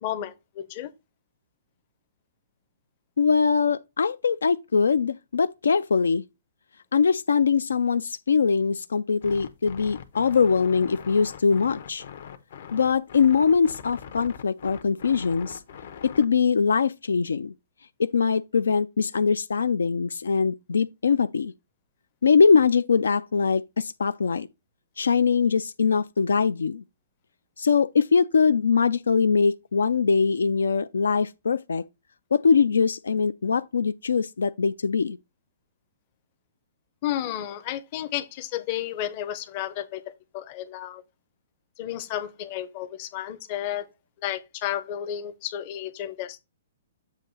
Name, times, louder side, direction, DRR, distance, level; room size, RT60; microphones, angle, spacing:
voice 1, 0.0-0.9 37.0-40.0 40.3-41.0 41.8-43.9 44.2-46.4, left 11 dB, 40° left, 0.7 m, -32 dB
voice 2, 3.2-6.2 6.9-12.0 12.7-15.6 16.0-17.5 18.0-21.5 22.2-24.5 25.0-26.8 27.6-31.8 32.3-35.2, left 5 dB, 90° left, 0.3 m, -22 dB
sound 1, 9.2-16.2, left 8 dB, 65° left, 0.8 m, -42 dB
7.3 x 2.6 x 5.3 m
hypercardioid pair, 140°, 0 cm